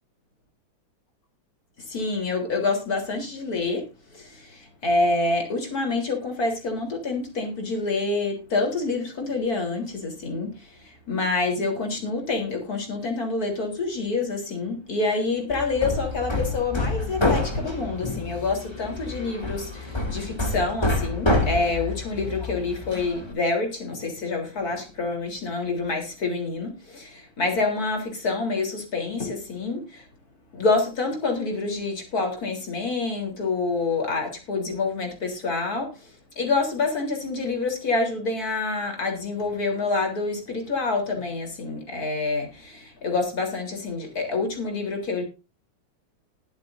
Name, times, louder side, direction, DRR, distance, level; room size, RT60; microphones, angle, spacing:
voice 1, 1.8-30.1 30.5-45.2, left 3 dB, 40° left, 4.1 m, -27 dB
Hammer, 15.5-23.3, left 2 dB, 10° left, 2.2 m, -28 dB
20.5 x 8.3 x 2.6 m
omnidirectional pair, 2.4 m